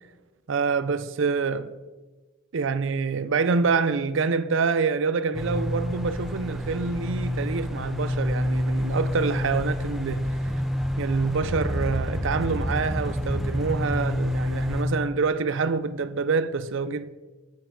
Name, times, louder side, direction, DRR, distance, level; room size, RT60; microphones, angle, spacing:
voice 1, 0.5-1.7 2.5-10.5 11.0-17.1, right 4 dB, 60° right, 0.5 m, -26 dB
sound 1, 5.3-14.8, left 1 dB, ahead, 0.8 m, -28 dB
13.5 x 6.9 x 3.8 m
head